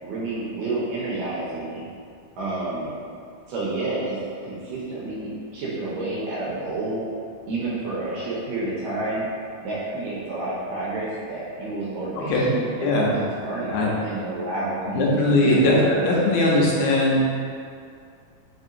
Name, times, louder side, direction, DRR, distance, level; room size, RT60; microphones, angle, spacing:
voice 1, 0.0-1.8 2.4-2.9 3.5-7.0 7.5-9.3 9.6-16.3, right 2 dB, 80° right, -7 dB, 2.1 m, -30 dB
voice 2, 12.2-12.5 12.8-13.1 13.7-13.9 14.9-17.2, left 1 dB, 85° left, -4 dB, 2.5 m, -20 dB
5.5 x 2.7 x 2.5 m, 2.3 s
omnidirectional pair, 4.2 m